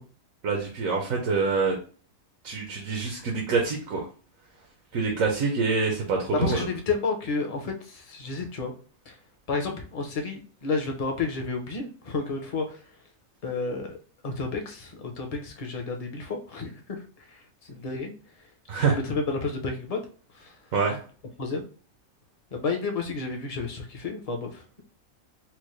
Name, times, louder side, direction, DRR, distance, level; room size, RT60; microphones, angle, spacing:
voice 1, 0.4-1.7 2.4-4.1 4.9-6.6 18.7-19.0 20.7-21.0, right 4 dB, 90° right, 0 dB, 1.3 m, -26 dB
voice 2, 6.3-8.7 9.1-9.2 9.5-12.8 13.4-14.0 14.2-16.8 17.7-18.1 18.7-20.0 20.4-20.5 21.4-21.6 22.5-24.6, left 4 dB, 35° left, 3 dB, 0.6 m, -31 dB
4.5 x 2.1 x 3.1 m, 0.39 s
omnidirectional pair, 1.4 m